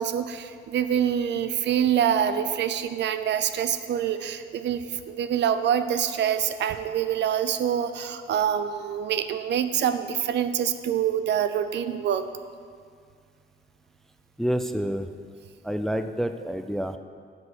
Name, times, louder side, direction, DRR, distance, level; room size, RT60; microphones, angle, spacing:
voice 1, 0.0-12.3, right 9 dB, 60° right, 11 dB, 0.5 m, -26 dB
voice 2, 14.4-15.1 15.6-17.0, equal, ahead, 8 dB, 0.4 m, -28 dB
7.7 x 5.7 x 6.1 m, 2.1 s
cardioid pair, 90°, 20 cm